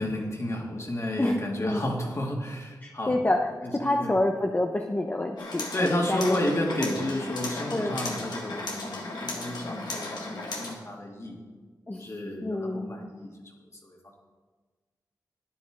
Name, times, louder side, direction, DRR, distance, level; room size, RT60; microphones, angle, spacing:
voice 1, 0.0-3.2 3.6-3.7 4.0-4.2 5.7-11.4 12.0-13.5 13.8-14.1, left 1 dB, 40° left, 0 dB, 2.5 m, -32 dB
voice 2, 1.2-1.9 2.8-6.4 6.8-6.9 7.7-8.0 11.9-12.1 12.4-12.8, left 1 dB, 25° left, 2 dB, 1.0 m, -28 dB
sound 1, 5.4-10.7, left 2 dB, 80° left, 2.0 m, -35 dB
12.5 x 9.8 x 3.8 m, 1.4 s
cardioid pair, 45°, 7 cm